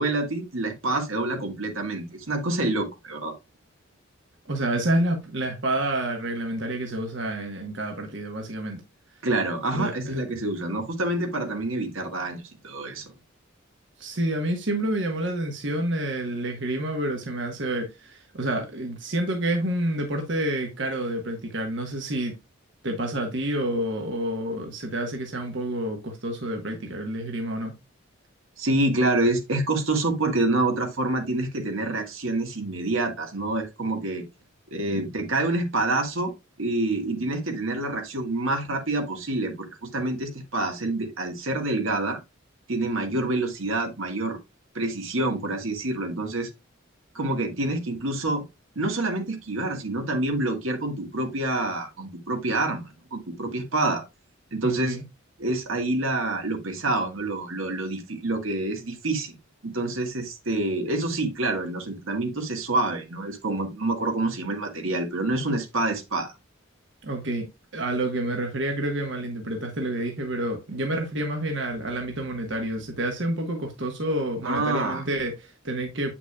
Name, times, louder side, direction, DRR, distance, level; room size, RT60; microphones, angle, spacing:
voice 1, 0.0-3.3 9.2-13.1 28.6-34.2 34.7-36.3 36.6-42.2 42.7-44.4 44.7-46.5 47.1-48.4 48.7-54.0 54.5-55.0 55.4-59.3 59.6-66.3 74.4-75.0, right 2 dB, 80° right, 1.6 m, -27 dB
voice 2, 4.5-8.8 9.7-10.2 14.0-22.4 22.8-27.8 34.9-35.0 54.6-55.0 67.0-76.1, right 1 dB, 60° right, 1.3 m, -29 dB
8.3 x 5.9 x 2.3 m
head